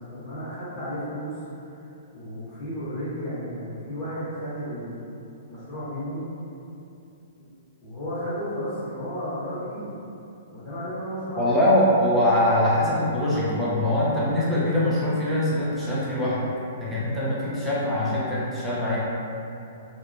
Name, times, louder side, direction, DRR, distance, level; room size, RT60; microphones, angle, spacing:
voice 1, 0.0-1.3 1.8-5.0 5.5-6.3 7.4-7.5 7.8-9.9 10.5-11.6, equal, 15° left, -14 dB, 1.4 m, -33 dB
voice 2, 11.4-16.5 16.8-19.0, left 1 dB, 5° right, -10 dB, 0.7 m, -23 dB
2.9 x 2.1 x 2.6 m, 2.8 s
hypercardioid pair, 120°, 0 cm